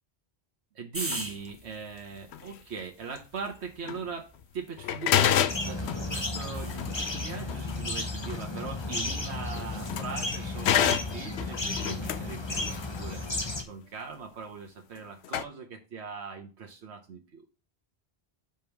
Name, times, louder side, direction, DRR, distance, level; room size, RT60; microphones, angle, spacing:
voice 1, 0.7-4.3 4.5-17.4, right 5 dB, 85° right, 2 dB, 1.4 m, -40 dB
sound 1, 0.9-5.3 6.1-6.9 9.6-10.0, right 1 dB, 15° right, 1.2 m, -42 dB
sound 2, 1.1-1.3 2.3-2.6 3.2-3.3 3.8-4.1 4.4-4.5 4.8-10.3 10.6-13.0 15.0-15.1 15.2-15.5, left 10 dB, 85° left, 0.9 m, -30 dB
sound 3, 5.5-13.6, left 2 dB, 25° left, 1.2 m, -34 dB
5.3 x 5.3 x 5.7 m, 0.33 s
omnidirectional pair, 1.1 m